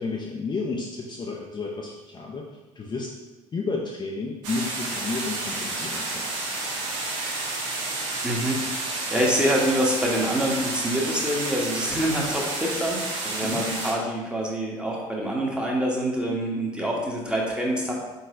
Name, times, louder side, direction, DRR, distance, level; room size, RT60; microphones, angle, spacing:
voice 1, 0.0-3.1 3.5-6.3 9.2-9.3 13.4-13.7, left 4 dB, 25° left, -2 dB, 0.5 m, -32 dB
sound 1, 4.4-13.9, right 2 dB, 70° right, 0.7 m, -30 dB
voice 2, 8.2-8.6 8.9-17.9, right 1 dB, 5° right, -2 dB, 1.0 m, -26 dB
4.2 x 4.0 x 2.5 m, 1.1 s
figure-of-eight pair, 55°, 17 cm